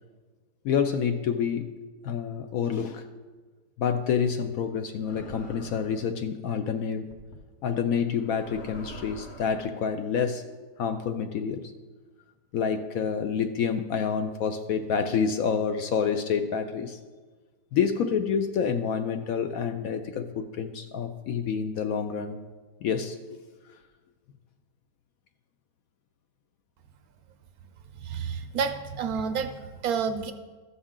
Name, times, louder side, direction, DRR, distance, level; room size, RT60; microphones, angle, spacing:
voice 1, 0.6-1.7 2.0-3.1 3.8-7.1 7.6-10.4 10.8-11.7 12.5-17.0 17.7-22.4 22.8-23.4, left 7 dB, 70° left, 7 dB, 0.9 m, -28 dB
sound 1, 5.1-6.1 7.1-7.4 8.1-9.7, equal, 45° left, 1.2 m, -44 dB
voice 2, 28.0-30.3, right 6 dB, 70° right, 8 dB, 0.9 m, -30 dB
14.0 x 6.3 x 3.7 m, 1.4 s
omnidirectional pair, 1.8 m